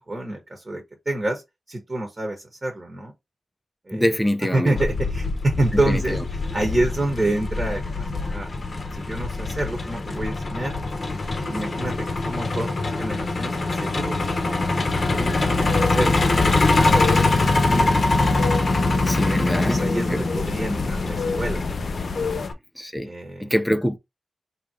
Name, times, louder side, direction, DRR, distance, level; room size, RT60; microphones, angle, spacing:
voice 1, 0.0-1.4 1.7-3.1 3.9-4.1 4.4-6.2 6.5-8.5 8.9-10.8 11.1-14.6 15.1-17.9 19.4-21.6 22.2-22.5 23.0-23.5, right 2 dB, 25° right, 1.2 m, -28 dB
voice 2, 3.9-4.8 5.9-6.2 16.0-16.2 19.0-19.8 20.1-20.2 22.8-23.1 23.4-24.0, equal, 5° left, 0.5 m, -24 dB
Truck, 4.8-22.5, left 2 dB, 40° left, 0.9 m, -23 dB
sound 1, 15.6-22.5, left 5 dB, 55° left, 0.3 m, -31 dB
3.6 x 2.9 x 4.8 m
wide cardioid pair, 165°, 0 cm